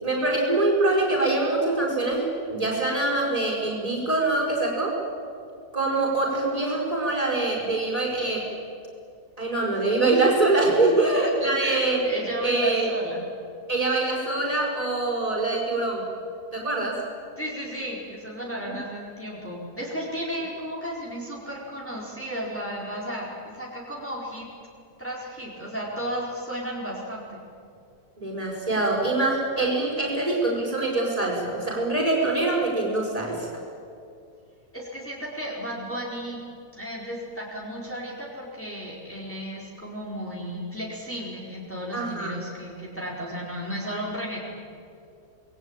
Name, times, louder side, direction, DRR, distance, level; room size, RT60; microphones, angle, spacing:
voice 1, 0.0-5.0 5.7-8.5 9.4-12.0 12.4-12.9 13.7-16.0 16.5-17.0 28.2-33.5 41.9-42.4, right 2 dB, 20° right, -2 dB, 5.2 m, -24 dB
voice 2, 10.8-13.2 17.4-24.5 25.0-27.4 34.7-36.4 36.7-44.5, equal, 10° left, -4 dB, 4.5 m, -33 dB
27.5 x 20.5 x 8.9 m, 2.5 s
omnidirectional pair, 1.7 m